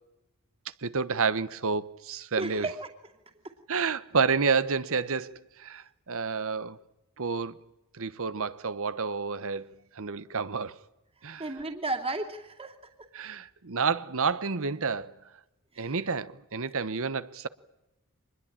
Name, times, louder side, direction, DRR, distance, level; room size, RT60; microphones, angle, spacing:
voice 1, 0.8-2.7 3.7-6.8 7.2-7.6 7.9-9.7 10.0-10.7 11.2-11.4 13.1-15.1 15.8-17.5, right 5 dB, 65° right, 1.1 m, -29 dB
voice 2, 2.4-2.9 11.4-12.7 15.7-16.0, right 2 dB, 25° right, 2.6 m, -33 dB
25.0 x 21.0 x 8.9 m
head